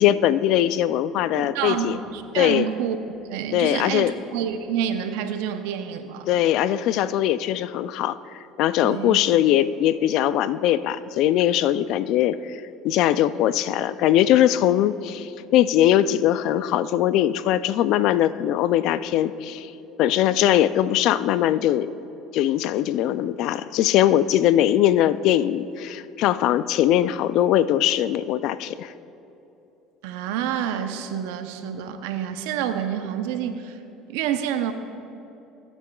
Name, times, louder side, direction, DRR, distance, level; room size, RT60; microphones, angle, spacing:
voice 1, 0.0-2.0 2.4-2.6 3.5-4.1 6.3-19.7 20.0-21.9 22.3-28.9, left 12 dB, 65° left, 15 dB, 0.3 m, -21 dB
voice 2, 1.3-3.0 3.3-6.3 8.8-9.2 30.0-33.8 34.1-34.7, right 9 dB, 80° right, 8 dB, 0.6 m, -28 dB
17.0 x 8.4 x 2.3 m, 2.9 s
supercardioid pair, 90°, 0 cm